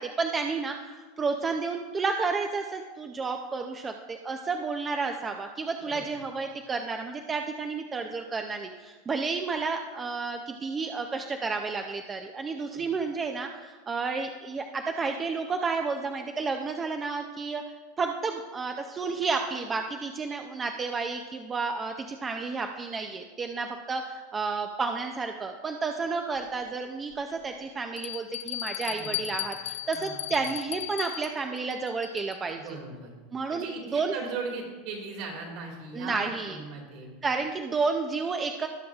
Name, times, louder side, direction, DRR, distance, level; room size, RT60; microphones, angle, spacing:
voice 1, 0.0-17.6 18.0-32.6 33.3-34.1 35.9-36.6 37.2-38.7, right 4 dB, 15° right, 5 dB, 0.4 m, -31 dB
Bell, 26.4-26.5 27.1-27.2 28.0-32.5, left 14 dB, 80° left, 0.4 m, -36 dB
voice 2, 28.9-29.4 29.9-30.3 32.5-33.1 33.5-37.1, right 4 dB, 50° right, 0 dB, 2.1 m, -39 dB
18.0 x 6.3 x 2.4 m, 1.4 s
supercardioid pair, 165°, 0 cm